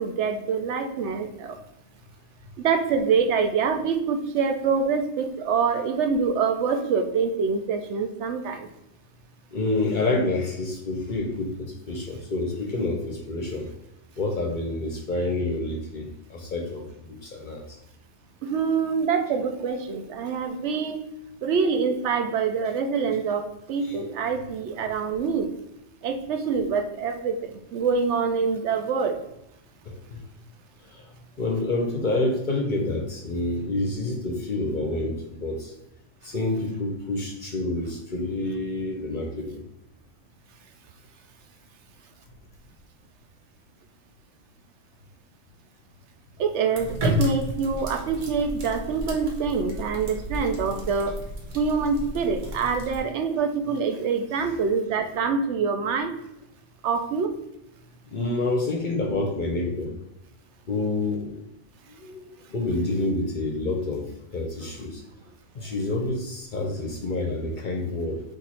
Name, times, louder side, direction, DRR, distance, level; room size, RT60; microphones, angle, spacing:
voice 1, 0.0-1.6 2.6-8.7 18.4-21.0 21.4-25.5 26.0-29.1 46.4-51.2 51.5-56.1 56.8-57.3, right 5 dB, 70° right, 6 dB, 0.8 m, -25 dB
voice 2, 9.5-13.7 14.2-17.8 23.8-24.0 29.8-30.2 30.8-31.1 31.4-35.7 36.2-39.6 58.1-59.9 60.7-61.4 61.9-65.0 65.5-68.2, left 2 dB, 50° left, 2 dB, 0.7 m, -28 dB
sound 1, 46.7-53.0, left 1 dB, 90° right, 1.3 m, -32 dB
4.5 x 2.5 x 4.1 m, 0.83 s
omnidirectional pair, 1.3 m